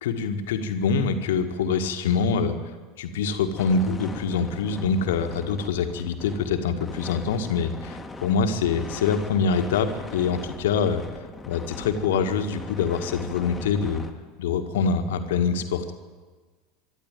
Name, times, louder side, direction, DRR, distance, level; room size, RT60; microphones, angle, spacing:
voice 1, 0.0-2.6 3.0-11.0 11.5-14.0 14.4-15.9, left 5 dB, 60° left, 7 dB, 1.8 m, -25 dB
sound 1, 3.6-14.1, left 3 dB, 15° left, 2.0 m, -40 dB
25.0 x 12.0 x 9.1 m, 1.4 s
figure-of-eight pair, 75°, 0 cm